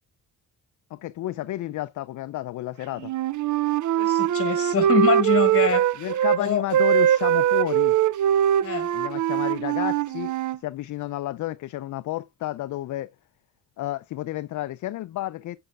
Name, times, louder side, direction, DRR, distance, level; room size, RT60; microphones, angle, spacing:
voice 1, 0.9-3.1 6.0-8.0 8.9-13.1 13.8-15.6, left 15 dB, 55° left, 0.4 m, -31 dB
Wind instrument woodwind instrument, 3.0-6.4 6.7-10.6, right 11 dB, 50° right, 0.5 m, -22 dB
voice 2, 4.0-5.9 6.4-6.6 8.6-8.9, left 7 dB, 35° left, 1.4 m, -25 dB
8.8 x 6.8 x 2.2 m
cardioid pair, 90°, 38 cm